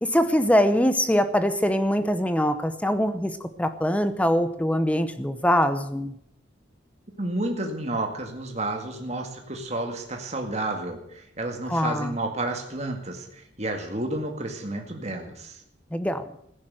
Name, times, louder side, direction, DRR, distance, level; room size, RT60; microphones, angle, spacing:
voice 1, 0.0-6.1 11.7-12.1 15.9-16.3, equal, 5° left, 11 dB, 0.8 m, -23 dB
voice 2, 7.2-15.6, right 2 dB, 35° right, 3 dB, 2.1 m, -31 dB
15.5 x 10.5 x 7.7 m, 0.72 s
head